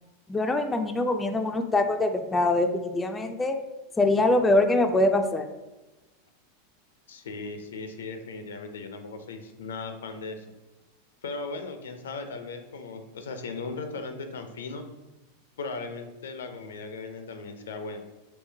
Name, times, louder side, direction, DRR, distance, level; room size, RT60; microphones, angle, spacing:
voice 1, 0.3-3.6 4.0-5.5, left 2 dB, 15° left, 6 dB, 0.3 m, -23 dB
voice 2, 7.1-10.4 11.2-14.8 15.6-18.1, left 3 dB, 85° left, 7 dB, 0.4 m, -37 dB
3.6 x 2.7 x 2.7 m, 1.1 s
hypercardioid pair, 105°, 0 cm